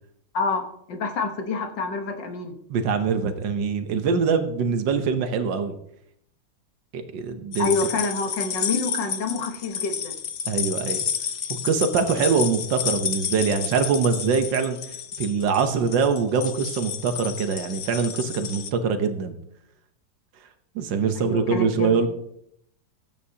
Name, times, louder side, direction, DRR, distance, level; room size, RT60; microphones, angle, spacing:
voice 1, 0.3-2.6 7.6-10.1 21.2-22.0, left 3 dB, 80° left, 4 dB, 2.0 m, -27 dB
voice 2, 2.7-5.8 6.9-7.7 10.5-11.0 11.5-19.3 20.7-22.1, right 5 dB, 80° right, 7 dB, 1.7 m, -23 dB
sound 1, 7.5-18.7, left 8 dB, 60° left, 0.7 m, -31 dB
19.0 x 9.0 x 2.8 m, 0.73 s
omnidirectional pair, 1.9 m